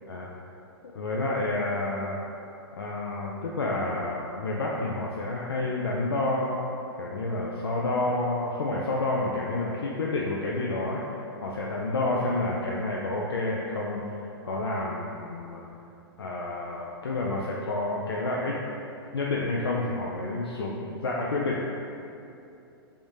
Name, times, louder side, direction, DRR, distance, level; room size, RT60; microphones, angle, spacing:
voice 1, 0.9-2.2 2.8-6.7 7.0-11.0 11.4-14.0 14.4-15.6 16.2-18.6 19.1-21.7, left 2 dB, 70° left, -3 dB, 0.4 m, -29 dB
3.5 x 3.4 x 2.7 m, 2.7 s
figure-of-eight pair, 105°, 13 cm